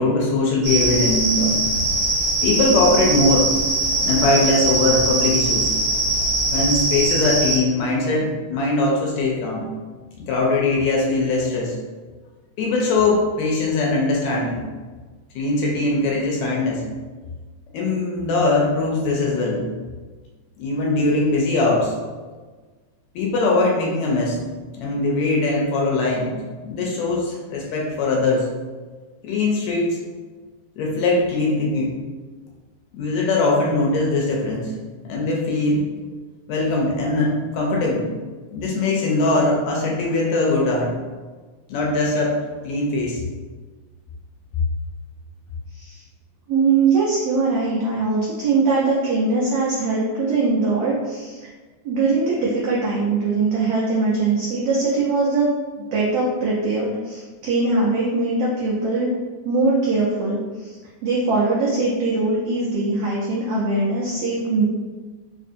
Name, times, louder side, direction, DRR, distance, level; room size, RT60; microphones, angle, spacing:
voice 1, 0.0-1.6 2.4-3.6 4.0-5.7 6.5-9.7 10.2-11.8 12.6-14.6 15.3-16.8 17.7-19.6 20.6-21.9 23.1-24.4 24.8-26.4 26.6-28.5 29.2-30.0 30.8-32.0 32.9-34.7 35.0-35.8 36.5-38.1 38.5-40.9 41.7-42.3 42.6-43.2, left 2 dB, 80° left, -2 dB, 1.8 m, -21 dB
sound 1, 0.6-7.6, right 2 dB, 60° right, 1.0 m, -21 dB
voice 2, 45.7-46.0 46.5-51.5 51.8-55.5 55.9-59.1 59.4-64.6, right 3 dB, 85° right, -6 dB, 1.3 m, -21 dB
4.7 x 2.6 x 2.5 m, 1.4 s
omnidirectional pair, 3.5 m